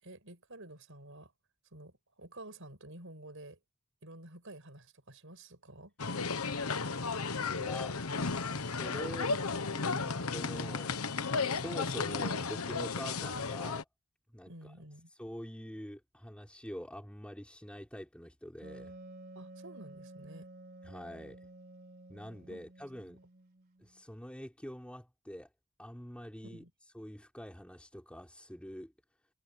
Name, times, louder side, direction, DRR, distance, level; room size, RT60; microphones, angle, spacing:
voice 1, 0.0-1.3 1.7-3.6 4.0-5.9 14.5-15.1 19.3-20.5 22.5-22.6 26.4-26.7, right 1 dB, 65° right, 6.7 m, -50 dB
sound 1, 6.0-13.8, left 4 dB, 90° left, 1.3 m, -34 dB
voice 2, 7.5-9.4 9.7-13.9 14.3-14.7 15.2-19.0 20.8-21.4 22.1-23.2 23.8-25.5 25.8-26.6 26.9-28.9, equal, 5° left, 4.4 m, -45 dB
Wind instrument woodwind instrument, 18.6-24.0, right 2 dB, 45° right, 4.8 m, -52 dB
head